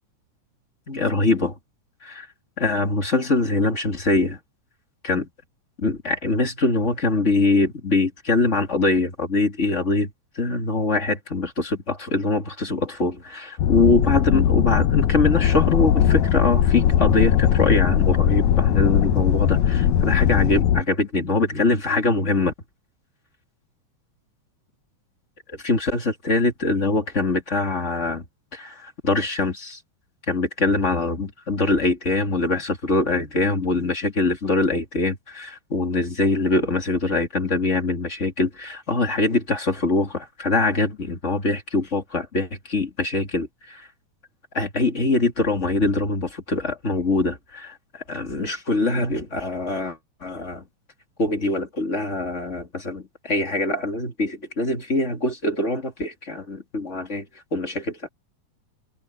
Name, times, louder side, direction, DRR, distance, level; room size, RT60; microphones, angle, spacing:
voice 1, 0.9-1.6 2.0-2.3 2.6-4.4 5.0-5.3 5.8-10.1 10.3-22.5 25.6-28.3 28.5-29.8 30.3-43.9 44.5-50.7 51.2-57.3 57.5-58.1, left 3 dB, 25° left, 2.5 m, -23 dB
sound 1, 13.6-20.8, left 10 dB, 75° left, 2.3 m, -19 dB
sound 2, 15.4-20.6, left 3 dB, 45° left, 6.9 m, -41 dB
omnidirectional pair, 3.5 m